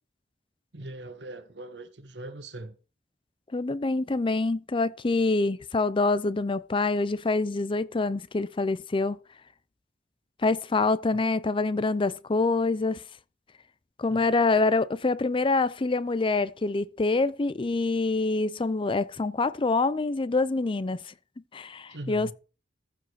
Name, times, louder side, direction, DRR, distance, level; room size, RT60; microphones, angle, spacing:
voice 1, 0.7-2.8 14.1-14.3 21.9-22.3, right 1 dB, 70° right, 1.6 m, -40 dB
voice 2, 3.5-9.2 10.4-13.0 14.0-21.1 21.5-22.3, left 3 dB, 30° left, 0.5 m, -26 dB
14.5 x 5.0 x 6.5 m
head